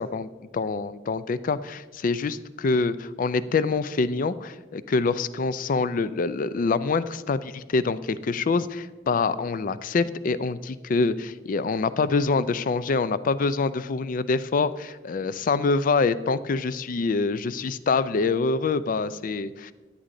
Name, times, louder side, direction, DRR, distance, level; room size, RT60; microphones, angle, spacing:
voice 1, 0.0-19.7, left 4 dB, 50° left, 15 dB, 0.4 m, -25 dB
10.0 x 9.7 x 3.8 m, 1.3 s
head